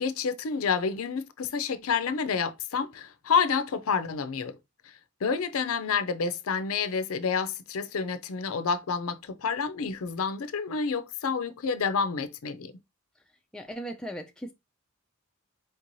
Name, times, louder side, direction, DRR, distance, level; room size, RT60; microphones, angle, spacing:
voice 1, 0.0-4.6 4.9-12.7, left 5 dB, 75° left, 0.5 m, -29 dB
voice 2, 13.5-14.5, right 1 dB, 5° left, 0.3 m, -37 dB
4.5 x 3.0 x 2.6 m
head